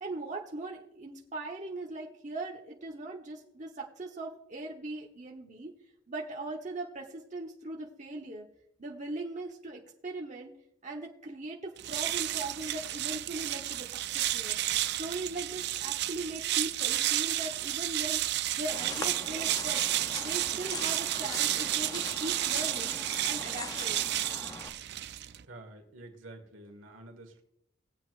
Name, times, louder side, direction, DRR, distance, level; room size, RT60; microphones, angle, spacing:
voice 1, 0.0-5.7 6.1-8.5 8.8-10.5 10.8-14.6 15.0-18.2 18.5-19.8 20.2-23.0 23.2-24.0, right 2 dB, 40° right, -1 dB, 1.0 m, -39 dB
sound 1, 11.8-25.4, right 14 dB, 55° right, 0.4 m, -32 dB
sound 2, 18.7-24.7, left 3 dB, 20° left, 0.5 m, -42 dB
voice 2, 25.5-27.4, right 2 dB, 80° right, 5 dB, 1.7 m, -49 dB
19.5 x 8.0 x 2.5 m, 0.77 s
head